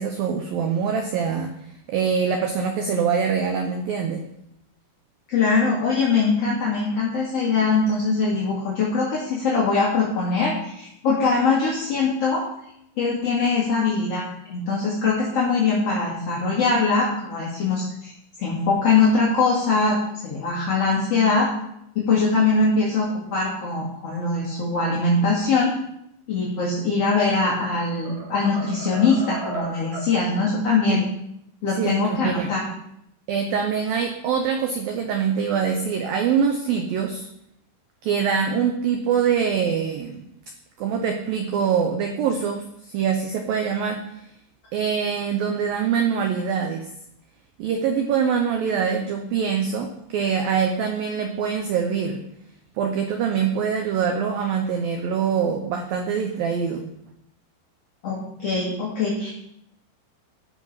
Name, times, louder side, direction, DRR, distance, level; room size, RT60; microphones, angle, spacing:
voice 1, 0.0-1.5 1.9-4.2 30.9-31.0 31.8-32.5 33.3-37.3 38.0-40.2 40.8-42.6 42.9-44.2 44.7-46.9 47.6-52.2 52.8-56.8, right 7 dB, 90° right, 4 dB, 2.0 m, -24 dB
voice 2, 5.3-12.4 13.0-18.1 18.4-21.5 21.9-25.7 26.3-31.1 31.6-32.7 58.0-59.3, left 4 dB, 45° left, -5 dB, 2.4 m, -22 dB
sound 1, 27.3-27.7 28.0-30.2, right 1 dB, 45° right, 3.4 m, -35 dB
13.0 x 6.4 x 5.8 m, 0.77 s
omnidirectional pair, 5.5 m